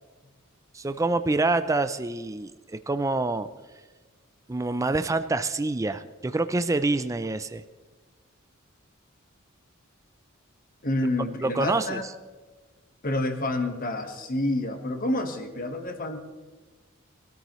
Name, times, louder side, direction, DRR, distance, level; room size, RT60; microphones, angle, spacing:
voice 1, 0.7-3.5 4.5-7.6 11.4-12.0, right 2 dB, 15° right, 10 dB, 0.4 m, -26 dB
voice 2, 10.8-12.1 13.0-16.2, left 1 dB, 45° left, 6 dB, 1.3 m, -28 dB
21.5 x 13.0 x 3.1 m, 1.3 s
head